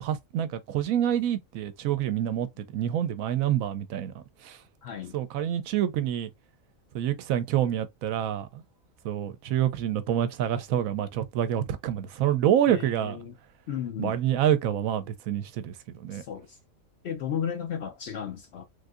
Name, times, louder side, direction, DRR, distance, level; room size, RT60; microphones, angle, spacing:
voice 1, 0.0-4.6 5.1-6.3 6.9-8.6 9.0-13.2 14.0-16.2, right 10 dB, 75° right, 1.0 m, -27 dB
voice 2, 4.8-5.1 12.7-13.3 13.7-14.2 16.1-16.4 17.0-18.6, left 8 dB, 60° left, 0.7 m, -34 dB
3.4 x 2.6 x 2.4 m
omnidirectional pair, 1.5 m